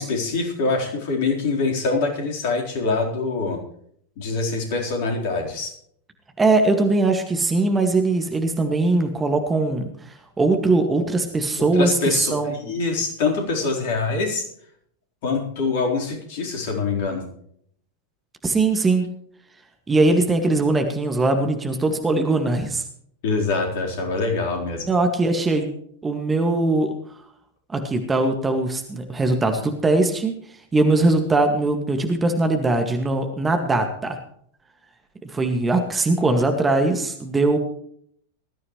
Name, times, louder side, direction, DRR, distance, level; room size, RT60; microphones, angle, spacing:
voice 1, 0.0-3.6 4.2-5.7 11.6-14.5 15.2-17.2 23.2-24.9, left 3 dB, 50° left, 0 dB, 4.1 m, -24 dB
voice 2, 6.4-9.8 10.4-12.5 18.4-19.1 19.9-22.8 24.9-25.7 26.0-26.9 27.7-30.3 30.7-34.2 35.2-37.6, right 2 dB, 15° right, 5 dB, 2.0 m, -21 dB
19.5 x 13.5 x 3.2 m, 0.65 s
figure-of-eight pair, 90°, 0 cm